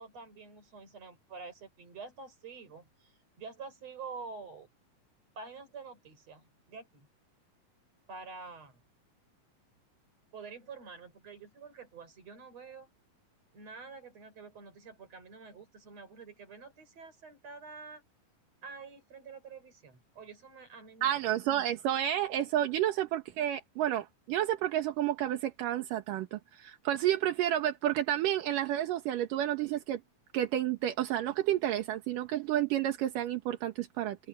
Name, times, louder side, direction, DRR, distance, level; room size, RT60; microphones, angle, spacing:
voice 1, 0.0-4.7 5.4-7.1 8.1-8.8 10.3-12.9 13.5-18.0 18.6-21.2, right 4 dB, 45° right, 6.3 m, -47 dB
voice 2, 21.0-30.0 30.3-34.2, right 12 dB, 75° right, 2.9 m, -30 dB
omnidirectional pair, 4.0 m